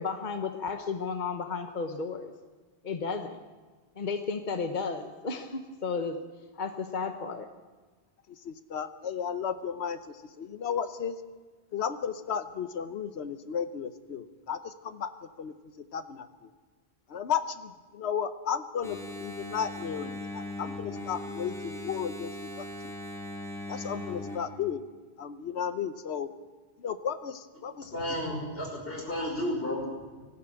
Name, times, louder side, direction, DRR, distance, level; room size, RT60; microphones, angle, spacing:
voice 1, 0.0-2.3 2.8-3.4 3.9-6.2 6.6-7.5, left 4 dB, 45° left, 7 dB, 1.2 m, -33 dB
voice 2, 8.4-10.0 10.4-11.2 11.7-15.1 15.4-15.5 15.9-16.3 17.1-22.3 22.6-22.7 23.7-24.8 25.2-26.3 26.8-28.0, left 7 dB, 85° left, 11 dB, 1.1 m, -34 dB
Engine, 18.8-24.4, left 1 dB, 5° left, 4.4 m, -39 dB
voice 3, 27.9-29.8 30.1-30.3, left 1 dB, 65° left, 0 dB, 5.9 m, -32 dB
19.5 x 15.0 x 8.9 m, 1.4 s
omnidirectional pair, 1.1 m